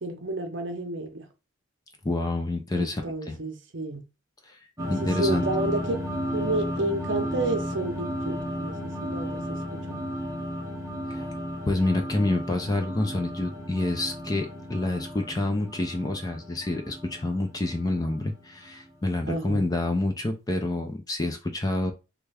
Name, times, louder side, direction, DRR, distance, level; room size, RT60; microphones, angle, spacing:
voice 1, 0.0-1.2 2.7-4.0 5.0-6.0 6.3-10.0 19.3-19.6, right 2 dB, 55° right, 0.7 m, -31 dB
voice 2, 2.0-3.4 4.5-4.6 4.9-5.4 11.1-11.3 11.7-21.9, left 2 dB, 20° left, 0.4 m, -28 dB
sound 1, 4.8-18.8, equal, 15° right, 0.8 m, -33 dB
3.2 x 2.3 x 3.4 m
head